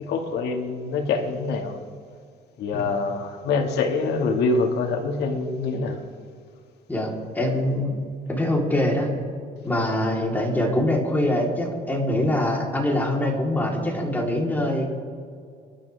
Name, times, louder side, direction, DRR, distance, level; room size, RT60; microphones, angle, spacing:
voice 1, 0.1-1.8 2.6-6.0, left 4 dB, 80° left, 3 dB, 2.1 m, -25 dB
voice 2, 7.4-8.0 8.3-9.1 9.6-14.9, left 1 dB, 10° left, -2 dB, 3.8 m, -24 dB
27.0 x 11.5 x 3.6 m, 2.2 s
cardioid pair, 110°, 17 cm